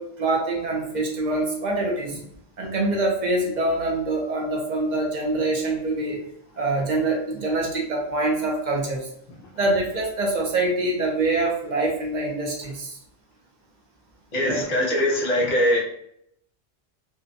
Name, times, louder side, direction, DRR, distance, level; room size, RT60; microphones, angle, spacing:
voice 1, 0.0-2.2 2.6-6.2 6.6-9.1 9.6-13.0 14.5-14.7, right 2 dB, 50° right, -1 dB, 0.6 m, -25 dB
voice 2, 14.3-15.8, left 1 dB, 45° left, -2 dB, 0.7 m, -22 dB
2.5 x 2.2 x 2.5 m, 0.71 s
omnidirectional pair, 1.1 m